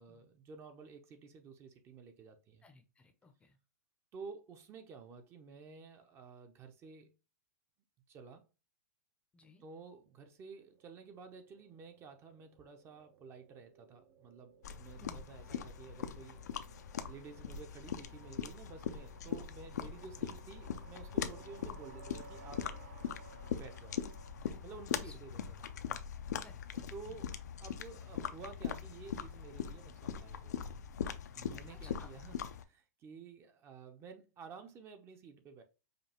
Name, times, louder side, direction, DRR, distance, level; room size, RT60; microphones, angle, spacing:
voice 1, 0.0-2.6 4.1-7.1 8.1-8.5 9.6-16.4 17.1-22.7 23.5-24.0 24.6-25.7 26.9-30.7 31.3-32.4 32.6-35.6, right 5 dB, 30° right, 0.6 m, -52 dB
voice 2, 2.6-3.6 9.3-9.6 15.0-15.3 19.2-19.4 19.8-20.3 24.4-25.2 26.4-27.2 31.7-32.1, left 3 dB, 10° left, 0.6 m, -60 dB
sound 1, 10.2-25.4, right 6 dB, 65° right, 0.9 m, -60 dB
sound 2, 14.6-32.6, left 8 dB, 80° left, 0.5 m, -41 dB
5.1 x 2.3 x 2.9 m
hypercardioid pair, 125°, 9 cm